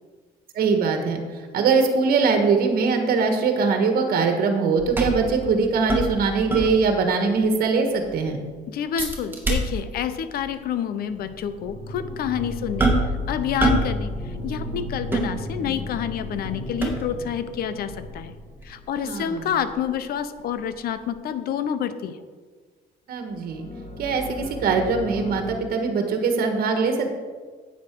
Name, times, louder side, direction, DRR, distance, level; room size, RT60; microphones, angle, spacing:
voice 1, 0.5-8.4 19.0-19.5 23.1-23.7 24.0-27.1, right 4 dB, 60° right, 5 dB, 1.5 m, -22 dB
sound 1, 4.8-7.1 7.4-7.5 7.9-8.3 9.0-10.1 10.3-10.5 11.2-11.3 12.8-13.2 13.6-14.0 14.2-15.8 16.3-17.3 17.9-20.7 21.0-21.1, right 2 dB, 10° right, 2.0 m, -26 dB
voice 2, 8.7-12.9 13.3-18.3 18.6-22.2, left 9 dB, 65° left, 12 dB, 0.8 m, -28 dB
sound 2, 11.0-19.3 23.3-25.5, left 1 dB, 45° left, 2.4 m, -35 dB
9.6 x 8.3 x 4.6 m, 1.5 s
cardioid pair, 110°, 17 cm